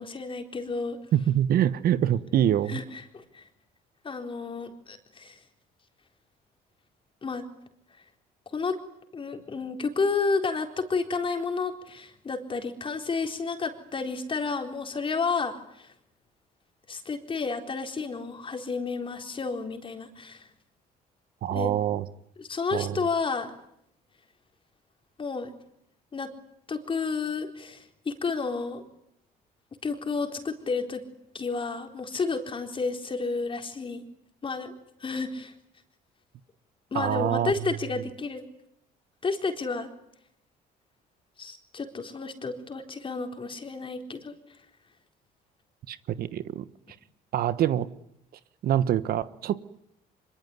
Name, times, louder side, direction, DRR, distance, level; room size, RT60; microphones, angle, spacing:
voice 1, 0.0-1.0 2.7-3.4 4.0-5.4 7.2-7.4 8.5-8.8 9.1-15.9 16.9-20.5 21.5-21.8 22.4-23.5 25.2-25.5 26.1-26.3 26.7-28.8 29.8-31.0 31.3-34.0 34.4-34.7 35.0-35.5 36.9-38.4 39.2-39.9 41.4-44.3, left 4 dB, 30° left, 5 dB, 4.0 m, -31 dB
voice 2, 1.1-2.8 21.4-22.1 22.7-23.0 36.9-37.5 45.9-46.7 47.3-47.9 48.6-49.6, right 11 dB, 65° right, 14 dB, 1.2 m, -25 dB
25.0 x 23.5 x 9.7 m, 0.76 s
cardioid pair, 110°, 17 cm